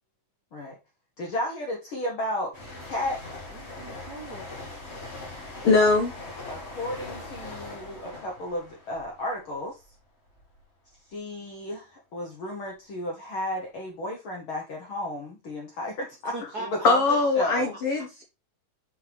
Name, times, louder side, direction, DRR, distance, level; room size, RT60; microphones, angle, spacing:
voice 1, 1.2-2.6 2.8-3.2 5.8-5.9 6.5-9.8 11.1-17.7, left 1 dB, 70° left, 1.2 m, -33 dB
sound 1, 2.5-10.0 10.3-10.6, left 2 dB, 25° left, 1.6 m, -41 dB
voice 2, 3.5-4.5 16.3-17.5, right 1 dB, 75° right, 0.9 m, -40 dB
voice 3, 5.6-6.1 16.8-18.2, left 3 dB, 90° left, 1.2 m, -21 dB
6.4 x 5.3 x 3.3 m
omnidirectional pair, 3.9 m